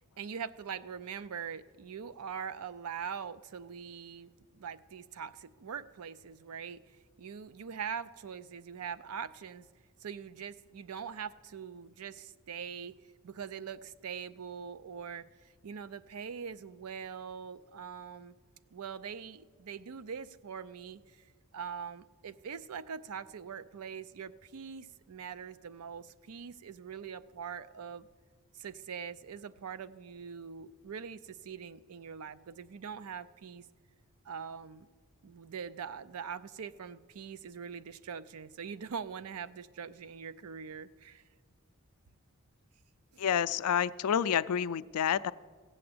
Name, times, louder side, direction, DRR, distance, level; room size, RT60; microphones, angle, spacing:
voice 1, 0.2-6.8 7.2-9.7 10.0-13.0 13.2-18.3 18.7-21.2 21.5-28.1 28.5-33.7 34.2-34.9 35.2-41.2 43.1-43.2, right 7 dB, 70° right, 15 dB, 0.5 m, -43 dB
voice 2, 43.2-45.3, left 8 dB, 80° left, 16 dB, 0.4 m, -29 dB
16.0 x 7.7 x 7.8 m, 1.5 s
head